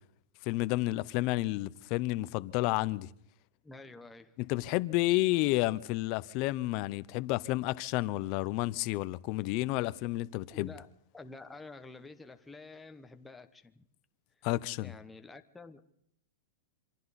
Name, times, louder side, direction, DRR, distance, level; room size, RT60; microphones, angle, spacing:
voice 1, 0.4-3.1 4.4-10.7 14.4-14.9, left 19 dB, 40° left, 0.7 m, -31 dB
voice 2, 3.6-4.4 10.5-10.9 11.1-13.8 14.4-14.5 14.8-15.8, left 3 dB, 5° left, 1.0 m, -49 dB
27.0 x 25.0 x 4.2 m
supercardioid pair, 160°, 0 cm